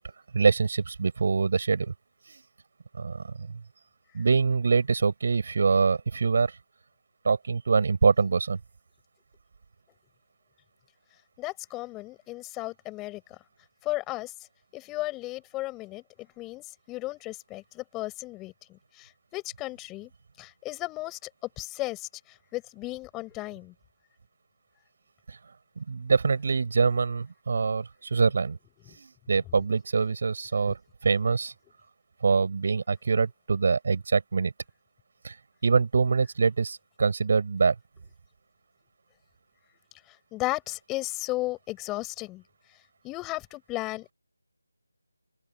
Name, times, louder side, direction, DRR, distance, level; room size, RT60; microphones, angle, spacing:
voice 1, 0.3-1.9 3.0-3.5 4.1-6.5 7.2-8.6 25.3-25.4 25.8-28.6 29.0-30.8 31.0-31.5 32.2-34.5 35.2-35.3 35.6-37.7, right 4 dB, 40° right, 7.4 m, -24 dB
voice 2, 11.4-13.4 13.8-14.3 14.7-16.0 16.4-20.1 20.4-21.3 21.6-22.1 22.5-23.7 29.6-29.7 30.7-30.8 40.3-42.4 43.0-44.1, left 19 dB, 10° left, 7.4 m, -35 dB
open air
figure-of-eight pair, 160°, 0 cm